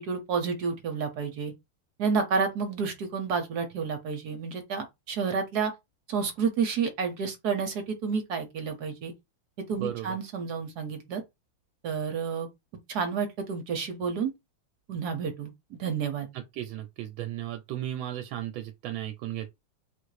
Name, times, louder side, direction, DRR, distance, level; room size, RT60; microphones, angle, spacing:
voice 1, 0.0-1.5 2.0-5.7 6.1-9.1 9.7-11.2 11.8-12.5 12.9-14.3 14.9-16.3, right 5 dB, 60° right, 1.2 m, -30 dB
voice 2, 9.8-10.2 16.3-19.5, right 12 dB, 80° right, 1.4 m, -35 dB
4.1 x 2.5 x 4.7 m
omnidirectional pair, 2.2 m